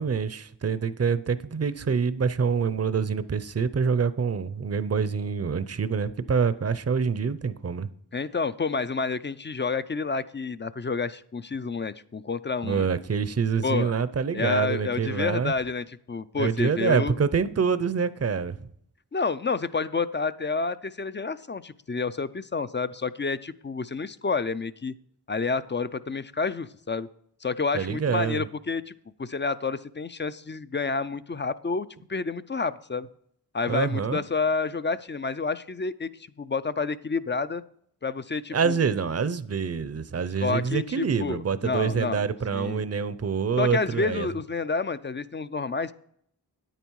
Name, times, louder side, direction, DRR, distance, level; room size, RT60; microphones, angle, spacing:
voice 1, 0.0-7.9 12.6-15.5 16.4-18.6 27.7-28.4 33.7-34.2 38.5-44.3, right 6 dB, 35° right, 0.6 m, -26 dB
voice 2, 8.1-12.9 13.6-13.9 14.3-17.2 19.1-24.9 25.3-27.1 27.4-28.9 29.2-33.1 33.5-36.1 36.4-37.6 38.0-38.8 40.4-42.2 42.5-42.8 43.6-45.9, left 4 dB, 30° left, 0.4 m, -29 dB
9.4 x 9.0 x 4.7 m
cardioid pair, 55°, 42 cm